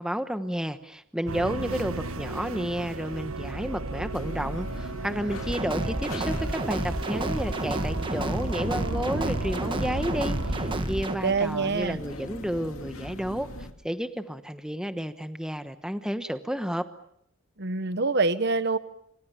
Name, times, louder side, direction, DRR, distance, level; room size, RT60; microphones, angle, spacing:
voice 1, 0.0-13.5 13.8-16.9, equal, 5° right, 9 dB, 1.1 m, -31 dB
sound 1, 1.3-10.8, right 3 dB, 80° right, 1.4 m, -35 dB
sound 2, 4.1-13.7, left 1 dB, 85° left, 2.4 m, -41 dB
sound 3, 5.5-11.1, right 1 dB, 25° right, 1.4 m, -30 dB
voice 2, 11.2-12.0 17.6-18.8, right 4 dB, 55° right, 13 dB, 1.1 m, -25 dB
28.0 x 25.5 x 7.0 m, 0.71 s
head